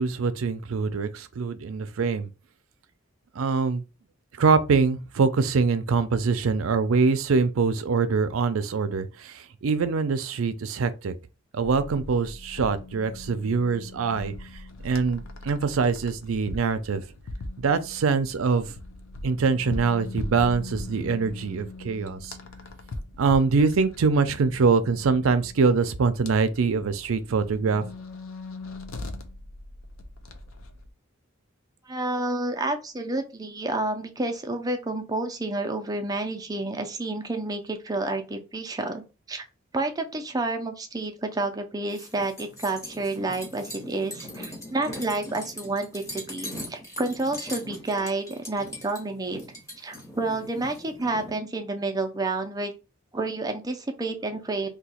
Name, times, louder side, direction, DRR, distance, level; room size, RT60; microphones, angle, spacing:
voice 1, 0.0-2.3 3.4-3.8 4.4-11.1 11.5-14.3 14.8-17.0 17.6-18.7 19.2-22.4 23.2-27.8, right 4 dB, 80° right, 0.4 m, -24 dB
sound 1, 11.6-30.9, left 2 dB, 80° left, 0.6 m, -40 dB
voice 2, 31.8-39.0 39.3-39.4 39.7-49.4 49.8-52.7 53.1-54.7, right 2 dB, 20° right, 0.4 m, -29 dB
sound 2, 41.9-51.4, left 1 dB, 15° left, 1.0 m, -40 dB
2.9 x 2.2 x 4.2 m
head